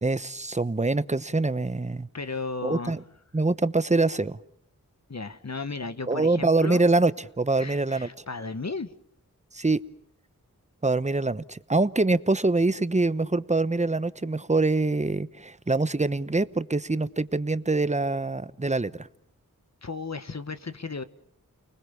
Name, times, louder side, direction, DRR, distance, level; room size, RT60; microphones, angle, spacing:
voice 1, 0.0-2.1 2.6-3.0 3.3-4.4 6.1-8.1 9.5-9.8 10.8-19.1, right 3 dB, 20° right, 1.0 m, -24 dB
voice 2, 2.1-3.0 5.1-6.9 7.6-8.9 19.8-21.0, left 4 dB, 50° left, 1.4 m, -34 dB
30.0 x 20.0 x 7.2 m
wide cardioid pair, 45°, 34 cm